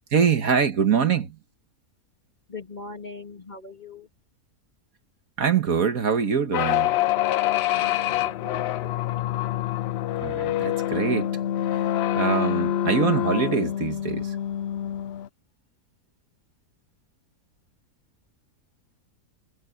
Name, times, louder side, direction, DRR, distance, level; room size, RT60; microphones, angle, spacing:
voice 1, 0.1-1.4 5.4-6.9 7.7-7.8 10.2-11.3 12.1-14.4, right 6 dB, 65° right, 1.8 m, -24 dB
voice 2, 2.5-4.1 7.8-8.9, left 3 dB, 30° left, 2.8 m, -41 dB
sound 1, 6.5-15.3, left 12 dB, 90° left, 0.5 m, -26 dB
omnidirectional pair, 1.6 m